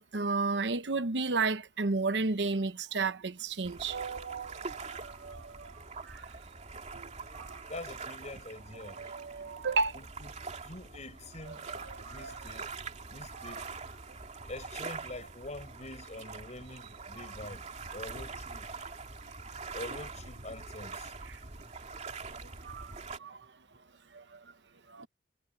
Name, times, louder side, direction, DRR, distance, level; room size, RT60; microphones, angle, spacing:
voice 1, 0.0-5.7 6.0-6.3 6.9-7.6 8.8-9.9 11.7-12.4 13.4-13.5 18.8-19.0 21.3-21.4 22.6-22.9 23.2-23.4 24.1-24.2 24.9-25.1, right 4 dB, 75° right, 0.9 m, -33 dB
sound 1, 3.6-23.2, right 4 dB, 40° right, 2.9 m, -44 dB
voice 2, 7.7-9.0 9.9-10.3 10.6-11.7 12.1-12.7 13.1-13.7 14.5-17.6 17.9-18.7 19.7-21.1, left 2 dB, 40° left, 5.2 m, -45 dB
head